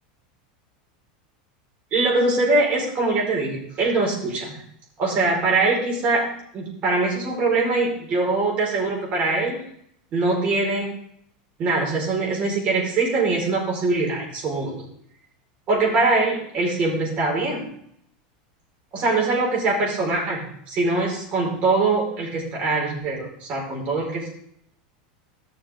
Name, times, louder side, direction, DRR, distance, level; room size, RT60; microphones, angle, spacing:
voice 1, 1.9-4.6 5.0-6.2 6.5-9.6 10.1-10.9 11.6-14.8 15.7-17.7 18.9-24.3, right 3 dB, 35° right, -2 dB, 4.9 m, -22 dB
13.5 x 7.2 x 3.8 m, 0.68 s
supercardioid pair, 150°, 4 cm